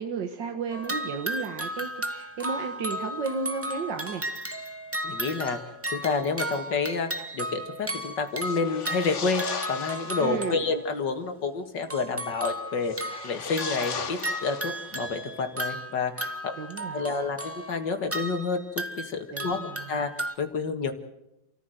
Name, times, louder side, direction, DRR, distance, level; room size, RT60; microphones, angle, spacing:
voice 1, 0.0-4.2 10.2-10.7 16.6-17.2 19.3-19.9, right 5 dB, 85° right, 5 dB, 2.1 m, -33 dB
sound 1, 0.7-10.9 11.8-20.3, right 1 dB, 10° right, 0.9 m, -35 dB
voice 2, 5.0-5.6 5.9-16.5 16.9-20.9, left 4 dB, 80° left, 6 dB, 2.4 m, -29 dB
sound 2, 8.4-10.4 12.8-15.1, left 6 dB, 45° left, 1.4 m, -37 dB
28.0 x 14.0 x 8.0 m, 0.88 s
omnidirectional pair, 1.9 m